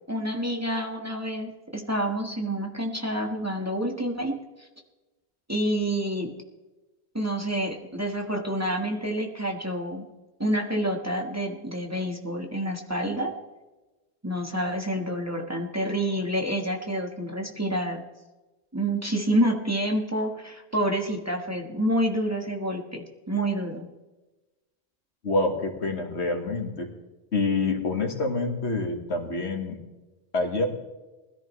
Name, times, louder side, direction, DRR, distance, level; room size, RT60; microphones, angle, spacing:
voice 1, 0.1-4.4 5.5-6.3 7.1-10.0 10.4-13.4 14.2-18.0 18.7-23.8, right 1 dB, 15° right, 1 dB, 1.4 m, -28 dB
voice 2, 25.2-26.9 27.3-29.8 30.3-30.7, left 3 dB, 85° left, 3 dB, 2.0 m, -27 dB
20.5 x 13.5 x 3.2 m, 1.1 s
omnidirectional pair, 1.1 m